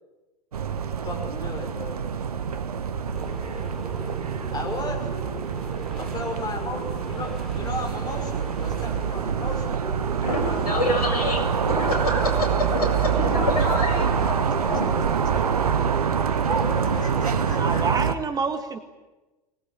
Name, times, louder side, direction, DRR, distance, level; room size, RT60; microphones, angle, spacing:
sound 1, 0.5-18.2, right 7 dB, 70° right, 1.3 m, -26 dB
voice 1, 1.0-2.1 4.5-5.0 6.0-9.8 10.3-11.0 13.4-13.5 14.5-14.8 16.5-17.9, left 2 dB, 20° left, 3 dB, 6.0 m, -35 dB
sound 2, 3.1-17.4, right 1 dB, ahead, 4.5 m, -40 dB
voice 2, 10.1-14.4 14.7-14.8 15.7-15.8, left 1 dB, 70° left, 3 dB, 7.5 m, -27 dB
voice 3, 17.5-18.8, right 4 dB, 20° right, 8 dB, 1.6 m, -27 dB
24.5 x 20.0 x 9.9 m, 1.1 s
figure-of-eight pair, 90°, 20 cm